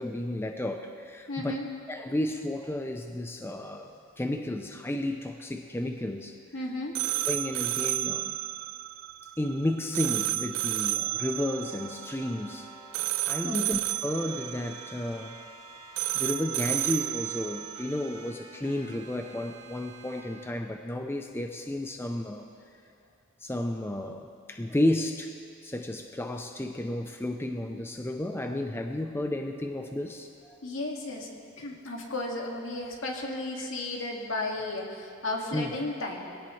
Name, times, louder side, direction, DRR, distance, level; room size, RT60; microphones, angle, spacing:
voice 1, 0.0-1.6 1.9-6.4 7.3-8.4 9.4-12.7 13.2-15.4 16.1-22.5 23.4-25.4 25.6-30.6 35.5-35.7, left 1 dB, 10° left, 5 dB, 0.6 m, -32 dB
voice 2, 1.3-1.7 6.5-6.9 13.4-13.7 30.6-31.3 31.6-36.3, left 2 dB, 70° left, 0 dB, 2.1 m, -34 dB
sound 1, 6.9-18.3, right 14 dB, 90° right, 0.5 m, -32 dB
sound 2, 10.9-13.5 13.9-20.5, right 2 dB, 30° right, 2.2 m, -50 dB
22.5 x 17.5 x 3.2 m, 2.3 s
head